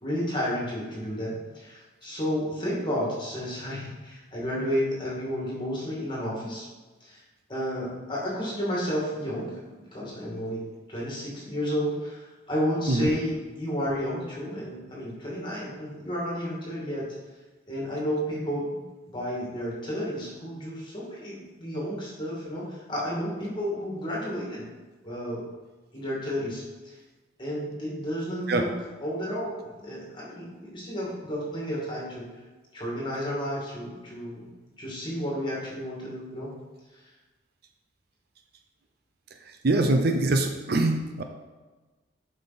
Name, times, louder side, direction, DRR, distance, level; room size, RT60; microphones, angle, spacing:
voice 1, 0.0-6.7 7.0-7.2 7.5-9.6 9.9-10.6 10.9-17.1 17.7-24.7 25.0-25.4 25.9-26.9 27.4-28.7 29.0-32.2 32.7-34.5 34.8-36.5, equal, 25° left, -5 dB, 2.2 m, -31 dB
voice 2, 39.6-41.2, right 2 dB, 50° right, 5 dB, 0.5 m, -23 dB
7.4 x 5.4 x 4.1 m, 1.3 s
head